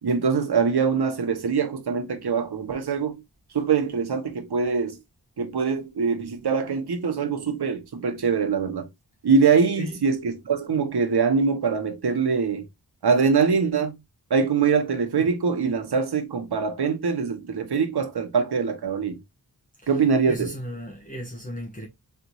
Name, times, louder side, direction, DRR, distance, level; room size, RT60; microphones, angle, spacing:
voice 1, 0.0-3.2 3.5-5.0 5.4-8.9 9.2-12.7 13.0-13.9 14.3-19.2 19.9-20.5, right 5 dB, 85° right, 1.0 m, -23 dB
voice 2, 19.8-21.9, equal, 20° left, 1.2 m, -36 dB
4.0 x 3.4 x 2.9 m
wide cardioid pair, 90°, 38 cm